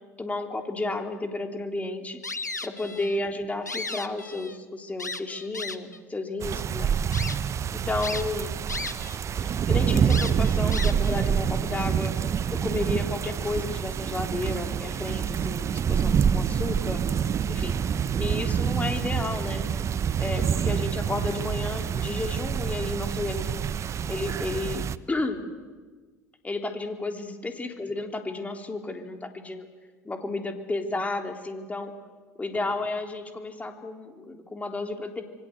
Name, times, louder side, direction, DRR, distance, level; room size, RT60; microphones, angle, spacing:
voice 1, 0.2-2.2 2.6-7.0 7.7-8.5 9.4-12.1 12.5-17.0 17.5-17.8 18.2-19.7 20.2-23.7 24.1-25.4 26.4-29.7 30.0-31.9 32.4-35.2, left 2 dB, 15° left, 5 dB, 3.5 m, -32 dB
sound 1, 2.2-3.2 3.5-4.6 5.0-6.0 6.6-6.7 7.1-7.4 8.0-9.2 9.5-9.6 10.1-11.2, left 3 dB, 90° left, 1.1 m, -35 dB
sound 2, 6.4-25.0, right 8 dB, 30° right, 0.9 m, -27 dB
27.5 x 23.5 x 8.0 m, 1.4 s
figure-of-eight pair, 65°, 9 cm